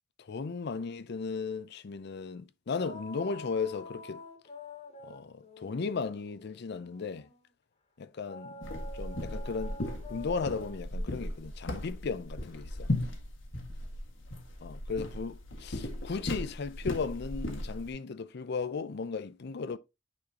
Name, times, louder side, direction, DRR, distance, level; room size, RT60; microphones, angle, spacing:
voice 1, 0.2-4.2 5.0-7.3 8.0-8.6 8.9-9.8 10.1-12.9 14.6-19.8, left 5 dB, 60° left, 0.5 m, -36 dB
sound 1, 2.8-7.4 8.3-13.0, left 2 dB, 35° left, 1.6 m, -48 dB
sound 2, 8.6-17.9, left 1 dB, 75° left, 1.8 m, -37 dB
9.6 x 4.3 x 2.8 m
head